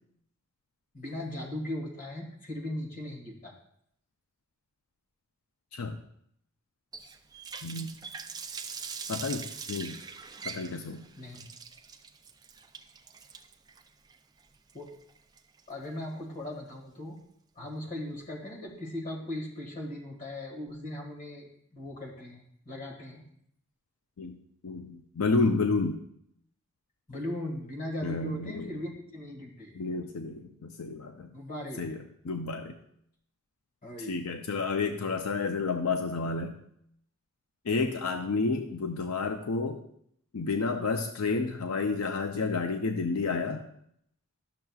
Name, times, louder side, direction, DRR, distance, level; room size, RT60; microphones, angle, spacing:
voice 1, 0.9-3.5 11.2-11.5 14.7-14.9 15.7-17.2 17.5-23.2 27.1-29.8 31.3-31.9 33.8-34.2, left 1 dB, 40° left, 0 dB, 1.7 m, -38 dB
Water tap faucet, 6.9-15.8, right 5 dB, 20° right, 0.3 m, -42 dB
voice 2, 7.6-7.9 9.1-10.0 10.4-11.0 24.2-24.4 24.6-26.0 28.0-28.7 29.7-31.3 31.8-32.8 34.1-36.5 37.7-39.8 40.3-43.6, left 4 dB, 80° left, 5 dB, 0.5 m, -30 dB
12.0 x 6.5 x 2.3 m, 0.72 s
head